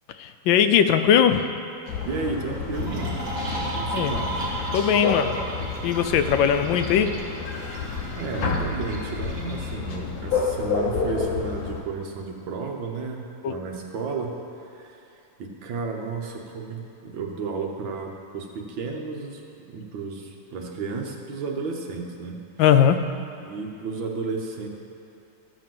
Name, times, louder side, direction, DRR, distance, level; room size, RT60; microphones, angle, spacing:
voice 1, 0.1-1.5 3.9-4.1 4.7-5.4 5.8-7.2 13.4-13.6 22.6-23.0, left 8 dB, 80° left, 9 dB, 1.3 m, -20 dB
sound 1, 1.9-11.8, left 5 dB, 60° left, 1.3 m, -30 dB
voice 2, 2.1-3.3 3.7-4.4 5.0-5.2 8.1-14.4 14.6-15.0 15.4-19.4 19.7-22.4 23.4-24.7, right 4 dB, 75° right, 1 dB, 1.8 m, -32 dB
sound 2, 2.7-9.7, right 2 dB, 20° right, 1.8 m, -34 dB
13.0 x 5.1 x 7.6 m, 2.7 s
omnidirectional pair, 2.1 m